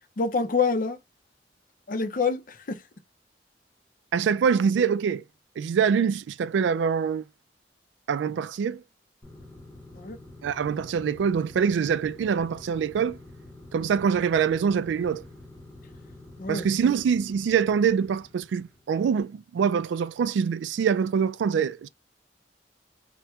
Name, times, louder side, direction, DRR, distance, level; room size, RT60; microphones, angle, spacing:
voice 1, 0.2-1.0 1.9-2.8 10.0-10.2 16.4-16.7, left 4 dB, 50° left, 0.5 m, -26 dB
voice 2, 4.1-5.2 5.6-7.2 8.1-8.8 10.4-13.2 13.7-15.2 16.5-21.9, right 6 dB, 80° right, 0.3 m, -24 dB
sound 1, 9.2-19.0, left 2 dB, 10° left, 1.0 m, -48 dB
4.3 x 2.1 x 2.3 m
head